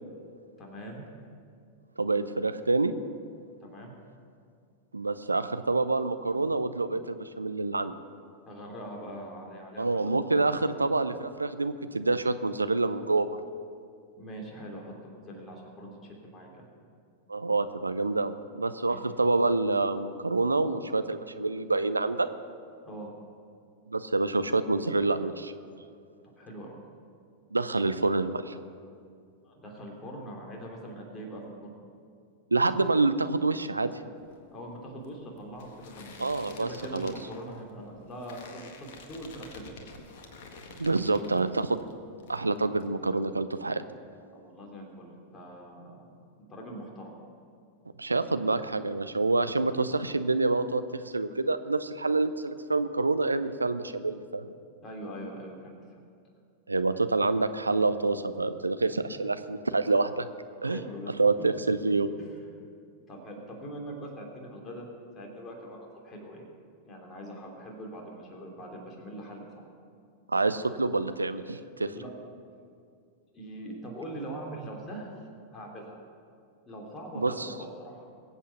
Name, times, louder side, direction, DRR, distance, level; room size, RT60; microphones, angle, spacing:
voice 1, 0.6-1.1 3.6-3.9 8.4-10.1 14.1-16.7 18.9-19.0 22.8-23.1 26.4-26.8 29.4-31.7 34.5-36.1 36.6-39.7 44.3-46.1 46.5-47.1 54.8-56.0 60.6-61.1 62.2-62.3 63.1-64.9 65.2-66.5 66.9-69.7 72.0-72.1 73.3-75.1 75.5-76.0 76.7-78.1, right 1 dB, 25° left, 0 dB, 3.1 m, -42 dB
voice 2, 2.0-2.9 4.9-7.9 9.8-13.3 17.3-22.3 23.9-25.5 27.5-28.6 32.5-33.9 36.2-37.1 40.8-41.8 42.3-43.8 48.0-54.5 56.7-60.3 60.6-60.8 61.2-62.1 70.3-71.9 77.1-77.6, right 3 dB, 85° right, 11 dB, 0.6 m, -27 dB
sound 1, 34.2-41.9 42.2-42.9, left 4 dB, 55° left, 1.6 m, -50 dB
21.5 x 8.3 x 5.9 m, 2.2 s
figure-of-eight pair, 90°, 0 cm